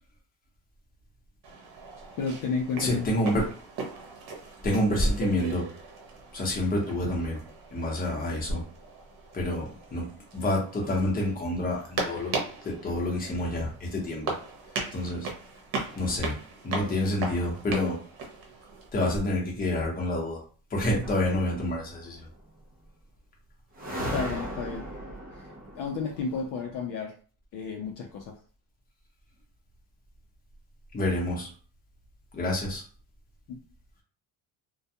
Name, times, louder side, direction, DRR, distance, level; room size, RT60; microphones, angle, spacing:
sound 1, 1.4-18.9, right 3 dB, 75° right, 0.9 m, -38 dB
voice 1, 2.2-3.2 24.1-24.9 25.3-25.4 25.7-27.1 27.5-28.4 33.5-33.6, left 5 dB, 60° left, 1 dB, 0.6 m, -32 dB
voice 2, 2.8-3.4 4.6-5.6 6.3-7.4 7.7-8.6 9.3-10.1 10.3-14.3 14.9-15.3 16.0-16.3 16.6-18.0 18.9-20.4 20.7-22.2 30.9-31.5 32.3-32.8, left 1 dB, 25° left, -2 dB, 0.8 m, -28 dB
sound 2, 21.0-22.2 23.8-26.6, equal, 25° right, 0.5 m, -37 dB
2.2 x 2.2 x 2.7 m, 0.40 s
cardioid pair, 145°, 37 cm